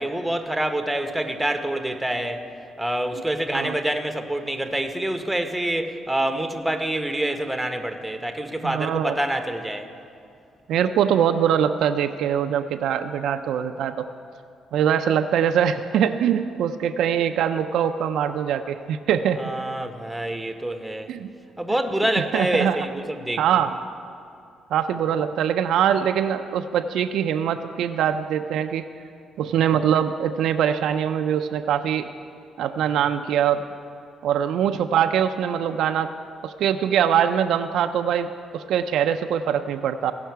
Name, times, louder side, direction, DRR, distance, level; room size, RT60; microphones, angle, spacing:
voice 1, 0.0-2.4 2.8-9.9 19.4-21.1 21.6-23.4, right 1 dB, 5° right, 6 dB, 0.8 m, -26 dB
voice 2, 8.6-9.1 10.7-14.1 14.7-19.4 21.1-21.3 22.3-22.8 23.4-23.8 24.7-28.8 29.4-32.1 32.6-33.6 34.2-36.1 36.4-40.1, right 9 dB, 80° right, 7 dB, 0.3 m, -23 dB
16.5 x 5.7 x 4.6 m, 2.4 s
cardioid pair, 90°, 0 cm